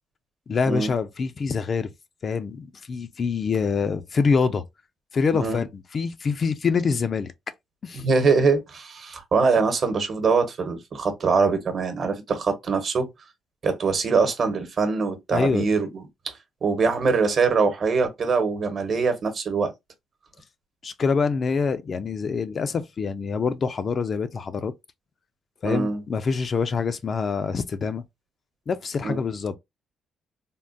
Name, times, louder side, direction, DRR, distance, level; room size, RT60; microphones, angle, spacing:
voice 1, 0.5-1.9 2.2-4.6 5.1-7.3 7.8-8.0 15.3-15.7 20.8-24.7 25.6-28.0 28.7-29.6, left 5 dB, 45° left, 0.4 m, -25 dB
voice 2, 5.3-5.6 7.9-13.1 13.6-19.7 25.6-26.0 29.0-29.3, right 4 dB, 50° right, 1.0 m, -23 dB
3.6 x 2.2 x 2.5 m
cardioid pair, 90°, 0 cm